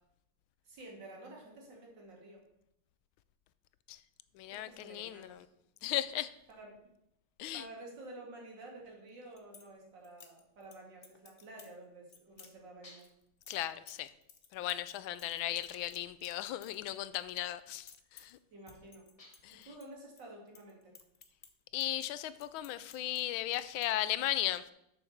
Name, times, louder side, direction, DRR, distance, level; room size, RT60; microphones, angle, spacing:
voice 1, 0.6-2.4 4.5-5.4 5.8-5.9 6.5-6.8 7.5-13.0 18.5-19.1 19.5-20.9, right 2 dB, 65° right, 2.9 m, -51 dB
voice 2, 4.4-5.3 5.8-6.3 7.4-7.6 13.5-14.1 14.5-18.4 19.4-19.7 21.7-24.6, left 13 dB, 85° left, 1.4 m, -36 dB
sound 1, 9.1-9.7 10.0-10.8 11.0-11.7 12.1-12.5 13.0-17.3 17.6-18.4 18.7-20.2 20.5-23.2 23.5-23.9, left 6 dB, 50° left, 0.6 m, -57 dB
sound 2, 12.8-13.3 15.7-16.2 19.2-19.6, left 2 dB, 20° left, 1.2 m, -58 dB
7.1 x 6.3 x 6.5 m
omnidirectional pair, 2.2 m